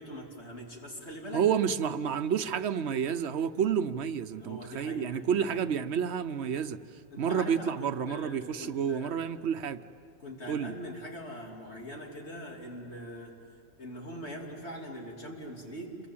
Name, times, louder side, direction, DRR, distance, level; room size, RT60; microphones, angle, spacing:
voice 1, 0.0-1.4 4.4-5.7 7.1-9.2 10.2-13.3 13.8-16.0, equal, 75° left, 0 dB, 3.5 m, -42 dB
voice 2, 1.3-6.8 7.2-9.8 10.5-10.7, right 7 dB, 75° right, 11 dB, 1.1 m, -30 dB
28.5 x 23.0 x 8.7 m, 2.4 s
omnidirectional pair, 1.1 m